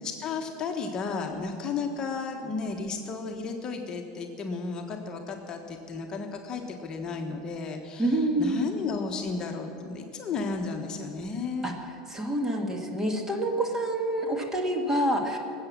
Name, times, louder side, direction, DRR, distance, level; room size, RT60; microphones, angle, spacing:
voice 1, 0.0-11.7, left 4 dB, 30° left, 3 dB, 1.3 m, -33 dB
voice 2, 8.0-8.7 11.6-11.7 12.1-15.4, right 1 dB, 15° right, 3 dB, 1.9 m, -27 dB
20.0 x 8.2 x 7.4 m, 2.8 s
supercardioid pair, 130°, 3 cm